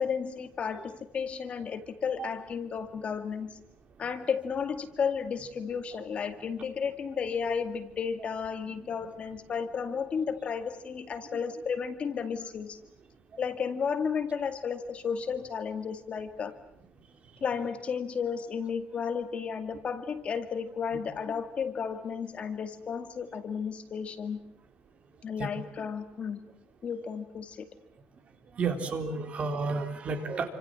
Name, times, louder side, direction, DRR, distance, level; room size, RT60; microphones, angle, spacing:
voice 1, 0.0-3.5 4.0-12.8 13.4-16.5 17.4-24.4 25.2-26.4 26.8-27.7, left 6 dB, 35° left, 9 dB, 2.2 m, -33 dB
voice 2, 25.4-25.7 28.5-30.5, right 4 dB, 35° right, 7 dB, 3.8 m, -32 dB
29.0 x 26.5 x 7.8 m, 0.72 s
cardioid pair, 150°, 4 cm